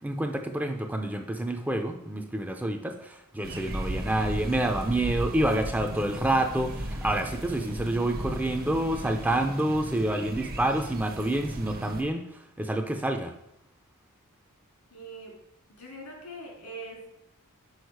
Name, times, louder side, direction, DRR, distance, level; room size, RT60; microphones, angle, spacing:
voice 1, 0.0-12.2 12.6-13.3, right 1 dB, 5° right, 4 dB, 0.5 m, -28 dB
sound 1, 3.4-12.0, right 1 dB, 45° right, 0.8 m, -36 dB
voice 2, 14.9-15.3 15.8-17.1, right 1 dB, 90° left, -1 dB, 2.8 m, -42 dB
6.4 x 4.9 x 4.6 m, 0.80 s
head